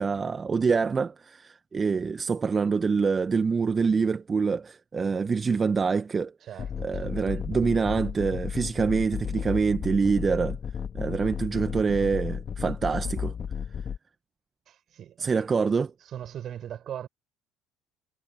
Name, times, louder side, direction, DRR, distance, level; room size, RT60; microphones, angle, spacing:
voice 1, 0.0-6.3 6.8-10.6 10.9-13.3 15.2-15.9, right 5 dB, 30° right, 1.7 m, -26 dB
voice 2, 6.4-7.6 14.7-15.4 16.0-17.1, right 10 dB, 45° right, 6.4 m, -40 dB
sound 1, 6.6-14.0, left 7 dB, 40° left, 2.4 m, -33 dB
figure-of-eight pair, 60°, 0 cm